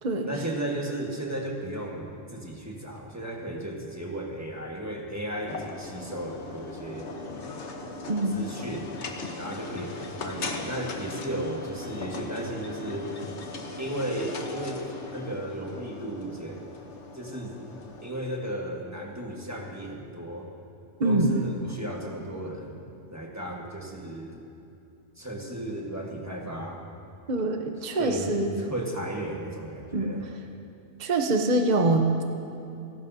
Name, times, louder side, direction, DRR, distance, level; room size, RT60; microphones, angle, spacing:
voice 1, 0.2-7.1 8.3-9.0 9.3-13.1 13.8-14.8 15.1-16.7 17.1-17.7 18.0-20.5 21.0-24.4 25.2-26.8 28.0-30.2, right 1 dB, 15° right, -1 dB, 1.5 m, -35 dB
sound 1, 5.5-18.1, left 3 dB, 70° left, 1.3 m, -39 dB
voice 2, 21.0-21.4 27.3-28.5 29.9-30.1 31.0-32.2, right 2 dB, 40° right, 3 dB, 0.9 m, -24 dB
29.5 x 12.0 x 2.8 m, 2.7 s
omnidirectional pair, 1.2 m